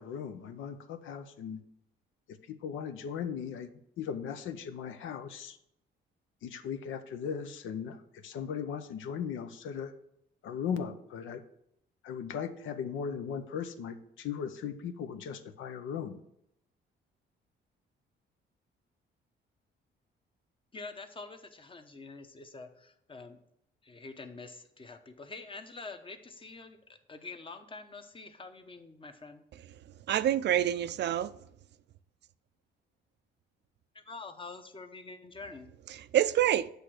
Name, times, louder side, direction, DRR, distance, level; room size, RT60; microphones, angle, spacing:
voice 1, 0.0-1.6 2.3-3.7 4.0-5.6 6.4-9.9 10.4-11.4 12.0-16.2, left 7 dB, 85° left, 0.7 m, -38 dB
voice 2, 20.7-23.4 23.8-29.4 33.9-35.7, left 3 dB, 25° left, 0.9 m, -46 dB
voice 3, 30.1-31.4 36.0-36.7, right 11 dB, 60° right, 0.4 m, -27 dB
8.2 x 3.3 x 6.3 m
cardioid pair, 90°, 20 cm